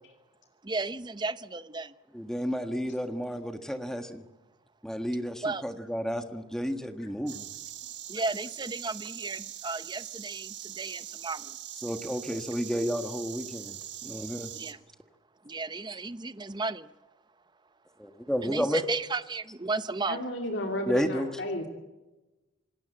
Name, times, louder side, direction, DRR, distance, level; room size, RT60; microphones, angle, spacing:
voice 1, 0.6-1.9 5.4-5.6 8.1-11.5 14.5-14.8 15.5-16.9 18.4-20.2, right 3 dB, 20° right, 14 dB, 0.7 m, -34 dB
voice 2, 2.1-4.2 4.8-7.5 11.8-14.5 18.0-18.9 20.9-21.3, equal, 5° left, 7 dB, 1.5 m, -31 dB
Insect, 7.3-14.7, right 12 dB, 60° right, 1.5 m, -42 dB
voice 3, 20.1-21.7, left 1 dB, 60° left, 2 dB, 2.7 m, -33 dB
27.0 x 18.5 x 7.8 m, 1.1 s
head